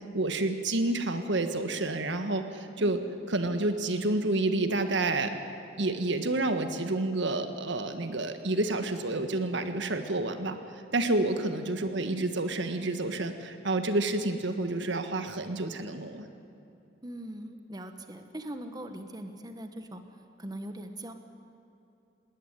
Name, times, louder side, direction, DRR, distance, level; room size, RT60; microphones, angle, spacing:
voice 1, 0.1-3.0 3.3-5.3 5.8-10.6 10.9-16.3, right 2 dB, 70° right, 8 dB, 1.5 m, -29 dB
voice 2, 17.0-20.0 20.4-21.1, right 1 dB, 20° right, 7 dB, 1.2 m, -41 dB
20.0 x 18.5 x 9.8 m, 2.7 s
head